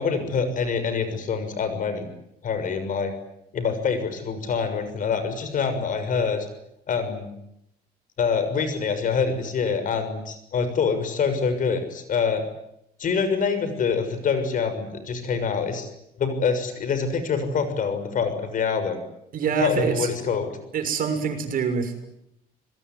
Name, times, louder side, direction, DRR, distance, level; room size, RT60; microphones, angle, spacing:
voice 1, 0.0-2.1 2.4-3.1 3.5-6.5 6.9-7.3 8.2-12.4 13.0-15.9 16.2-19.0 19.6-20.5, left 5 dB, 50° left, 10 dB, 6.6 m, -25 dB
voice 2, 19.3-20.1 20.7-22.1, right 5 dB, 55° right, 7 dB, 6.4 m, -25 dB
27.0 x 21.5 x 9.6 m, 0.80 s
cardioid pair, 110°, 17 cm